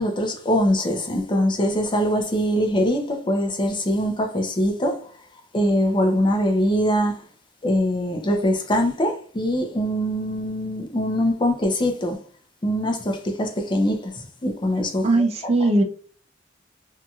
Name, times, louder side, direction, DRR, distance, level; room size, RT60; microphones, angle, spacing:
voice 1, 0.0-5.1 5.5-7.2 7.6-12.2 12.6-15.3, equal, 25° left, 0.5 m, -23 dB
voice 2, 15.0-15.8, right 2 dB, 35° right, 0.4 m, -19 dB
2.8 x 2.7 x 2.3 m
head